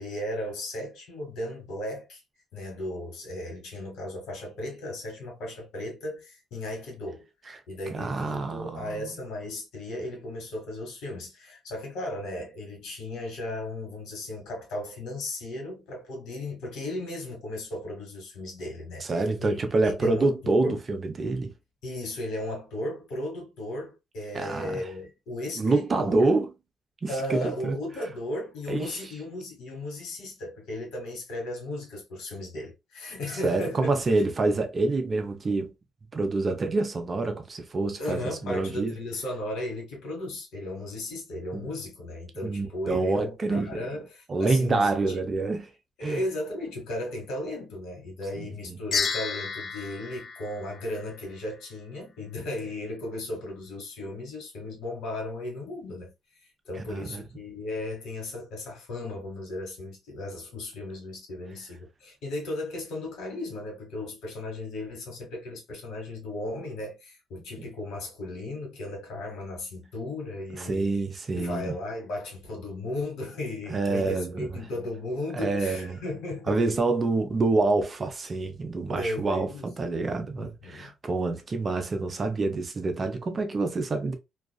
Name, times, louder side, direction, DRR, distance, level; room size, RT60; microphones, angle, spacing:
voice 1, 0.0-2.2 2.5-7.2 7.7-19.1 19.4-20.8 21.8-26.3 27.1-34.2 38.0-44.9 46.0-56.1 56.4-70.9 71.4-76.6 79.0-79.7 80.4-80.9, left 1 dB, 85° left, 1.2 m, -35 dB
voice 2, 7.9-9.1 19.0-21.5 24.3-24.8 25.6-26.5 27.0-27.8 28.7-29.0 33.4-35.7 36.1-38.9 41.5-41.7 42.4-43.8 44.3-45.7 46.0-46.2 48.4-48.8 56.9-57.2 70.6-71.7 73.7-74.6 75.3-76.0 76.5-84.2, right 3 dB, 35° right, 0.6 m, -27 dB
sound 1, 48.9-51.4, left 5 dB, 45° left, 0.6 m, -32 dB
2.4 x 2.4 x 2.2 m
cardioid pair, 90°, 0 cm